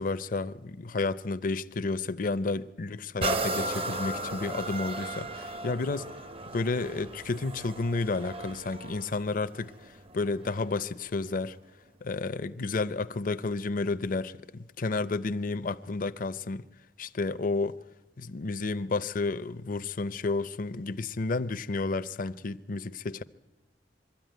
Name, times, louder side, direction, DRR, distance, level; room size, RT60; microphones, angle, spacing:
voice 1, 0.0-6.1 6.5-11.6 12.0-16.6 17.0-17.8 18.2-23.2, left 3 dB, 50° left, 0.6 m, -31 dB
sound 1, 3.2-10.8 11.4-11.5, right 2 dB, 35° right, 0.6 m, -36 dB
23.5 x 13.5 x 9.2 m
head